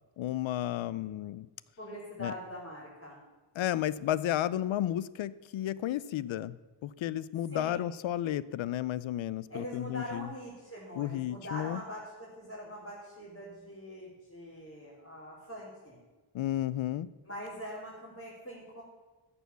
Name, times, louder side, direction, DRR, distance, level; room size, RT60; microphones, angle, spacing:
voice 1, 0.2-1.5 2.2-2.3 3.6-6.6 6.8-10.3 10.9-11.8 16.3-17.1, left 12 dB, 80° left, 18 dB, 0.6 m, -32 dB
voice 2, 1.8-3.2 7.5-7.9 9.5-16.0 17.3-18.8, equal, 30° left, -8 dB, 3.8 m, -43 dB
14.0 x 7.0 x 6.9 m, 1.2 s
wide cardioid pair, 140°, 46 cm